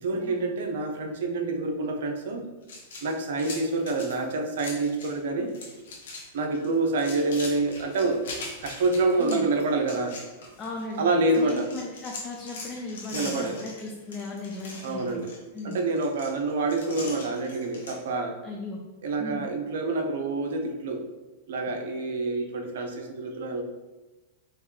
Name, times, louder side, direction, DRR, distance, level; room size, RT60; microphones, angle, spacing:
voice 1, 0.0-2.5 3.0-5.5 6.3-8.2 8.6-10.2 11.0-11.7 13.1-13.6 14.8-15.3 15.6-18.4 19.0-21.0 21.5-23.6, right 3 dB, 75° right, 3 dB, 0.7 m, -27 dB
sound 1, 2.6-5.2 5.5-6.2 6.5-11.0 11.3-18.0, left 3 dB, 85° left, 1.3 m, -41 dB
voice 2, 10.6-11.0 11.4-15.3 15.5-15.8 18.4-18.8 19.2-19.4, left 3 dB, 25° left, -1 dB, 0.6 m, -37 dB
4.6 x 3.1 x 3.2 m, 1.1 s
hypercardioid pair, 130°, 0 cm